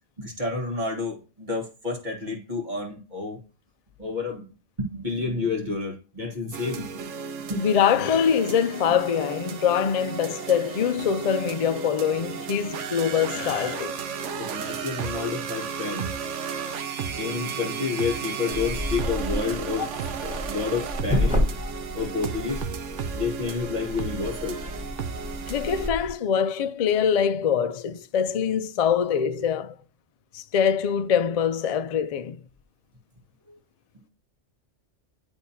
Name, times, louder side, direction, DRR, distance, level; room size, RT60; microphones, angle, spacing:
voice 1, 0.2-3.4 4.0-4.5 4.8-7.1 7.5-7.7 14.3-16.1 17.2-19.9 20.2-21.4 21.9-22.6 23.1-24.6 33.5-33.6, left 4 dB, 40° right, 1.8 m, -30 dB
sound 1, 6.5-25.9, right 6 dB, 85° right, 1.1 m, -34 dB
voice 2, 7.5-14.0 25.5-29.8 30.3-32.4, left 8 dB, 70° left, 0.3 m, -24 dB
sound 2, 18.5-26.1, left 1 dB, 5° right, 1.5 m, -31 dB
10.0 x 3.5 x 2.7 m
omnidirectional pair, 1.2 m